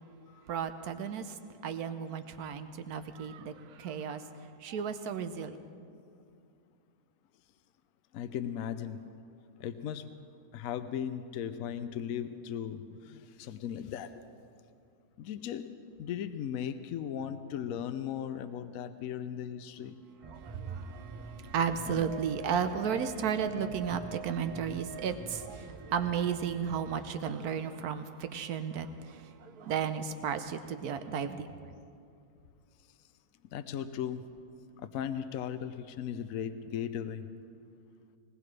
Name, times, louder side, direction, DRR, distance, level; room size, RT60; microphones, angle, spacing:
voice 1, 0.5-1.4 1.6-5.6 20.2-31.7, right 7 dB, 75° right, 9 dB, 1.3 m, -34 dB
voice 2, 8.1-9.0 9.6-10.3 10.5-14.1 15.2-15.7 16.0-20.0 21.9-22.0 33.5-34.2 34.8-37.2, left 9 dB, 70° left, 10 dB, 1.0 m, -37 dB
sound 1, 20.2-27.1, right 5 dB, 30° right, 0.5 m, -45 dB
21.0 x 20.0 x 3.3 m, 2.4 s
omnidirectional pair, 1.6 m